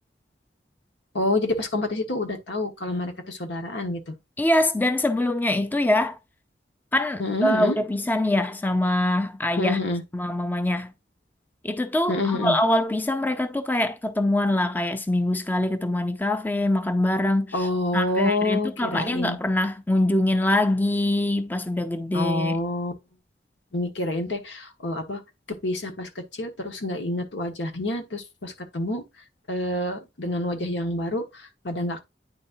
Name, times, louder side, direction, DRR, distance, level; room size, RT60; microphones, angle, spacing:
voice 1, 1.1-4.1 7.2-7.7 9.6-10.0 12.1-12.6 17.5-19.4 22.1-22.9 23.7-25.2 25.6-26.1 26.4-29.0 29.5-32.0, left 2 dB, 85° left, 1.4 m, -27 dB
voice 2, 4.4-6.2 6.9-9.8 10.1-10.9 11.6-22.6, left 1 dB, 10° left, 0.4 m, -24 dB
9.6 x 4.1 x 2.6 m
head